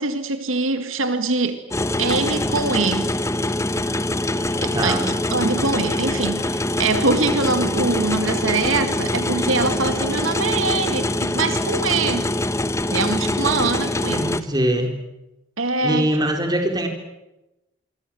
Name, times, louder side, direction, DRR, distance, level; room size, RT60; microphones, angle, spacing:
voice 1, 0.0-1.6 2.0-3.1 4.6-5.0 5.3-12.4 12.9-14.3 15.6-16.1, right 3 dB, 75° right, 8 dB, 2.1 m, -23 dB
sound 1, 1.7-14.4, left 1 dB, 15° left, 1.1 m, -24 dB
voice 2, 4.7-5.1 14.1-14.9 15.8-16.9, right 1 dB, 20° right, 4 dB, 4.5 m, -22 dB
27.5 x 24.5 x 7.8 m, 0.96 s
head